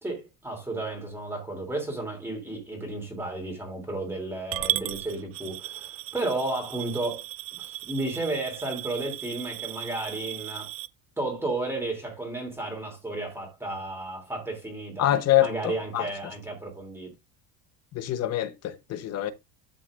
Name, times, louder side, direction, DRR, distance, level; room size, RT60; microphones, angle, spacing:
voice 1, 0.0-7.2 7.5-10.7 11.2-15.1 15.4-17.1, right 2 dB, 5° right, 2.9 m, -33 dB
Coin (dropping) / Glass, 4.5-10.9, right 15 dB, 35° right, 0.4 m, -35 dB
voice 2, 15.0-16.0 17.9-19.3, left 12 dB, 35° left, 1.0 m, -25 dB
13.0 x 6.1 x 2.5 m
cardioid pair, 160°, 43 cm